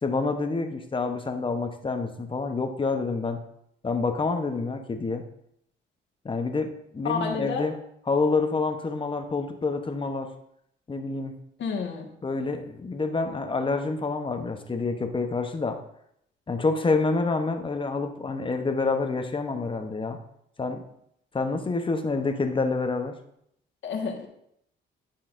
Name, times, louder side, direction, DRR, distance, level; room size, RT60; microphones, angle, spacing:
voice 1, 0.0-3.4 3.8-5.2 6.2-7.8 8.1-10.3 10.9-11.3 12.2-15.8 16.5-20.2 20.6-20.8 21.3-23.1, left 3 dB, 25° left, 6 dB, 0.9 m, -27 dB
voice 2, 7.0-7.7 11.6-12.0 23.8-24.3, left 5 dB, 65° left, 1 dB, 1.7 m, -29 dB
11.0 x 5.6 x 2.6 m, 0.74 s
cardioid pair, 90°, 20 cm